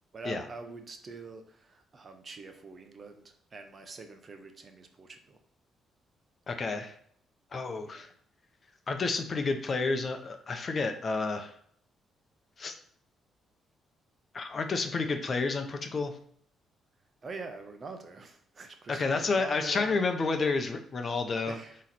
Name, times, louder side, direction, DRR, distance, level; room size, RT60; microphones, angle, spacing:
voice 1, 0.1-5.4 7.8-8.1 17.2-20.0 21.5-21.8, right 3 dB, 40° right, 6 dB, 0.9 m, -44 dB
voice 2, 6.5-6.9 7.5-8.1 8.9-11.5 12.6-12.7 14.3-16.1 18.9-21.5, left 4 dB, 40° left, 6 dB, 0.8 m, -30 dB
8.0 x 3.2 x 4.3 m, 0.62 s
cardioid pair, 90°, 0 cm